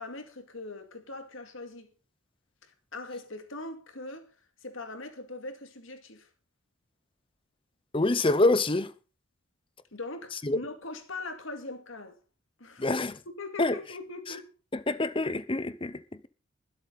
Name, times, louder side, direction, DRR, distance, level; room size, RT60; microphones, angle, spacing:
voice 1, 0.0-1.9 2.6-4.3 4.6-6.3 9.9-12.2 12.6-12.9 13.4-14.5, left 2 dB, 65° left, 2.4 m, -41 dB
voice 2, 7.9-8.9 10.4-10.6 12.8-13.2 13.6-13.7 14.9-16.3, left 2 dB, 25° left, 0.7 m, -26 dB
23.0 x 8.2 x 4.1 m
head